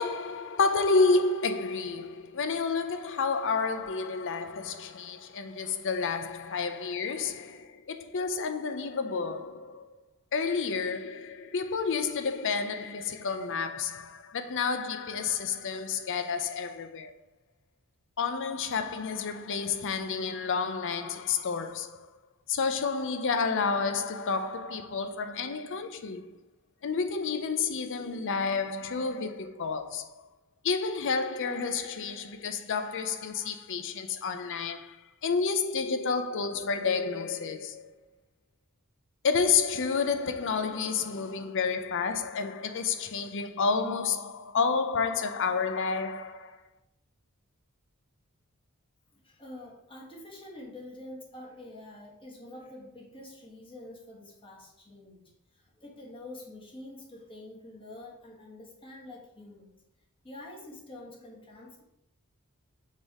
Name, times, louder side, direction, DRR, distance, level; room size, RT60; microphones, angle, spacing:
voice 1, 0.0-10.0 10.3-17.1 18.2-22.1 22.5-26.4 26.8-30.2 30.6-37.9 39.2-46.6, left 5 dB, 60° left, 0.6 m, -30 dB
voice 2, 5.2-5.8 49.2-55.2 55.8-59.7 60.2-61.8, left 1 dB, 25° left, 1.7 m, -47 dB
6.6 x 3.5 x 4.8 m
head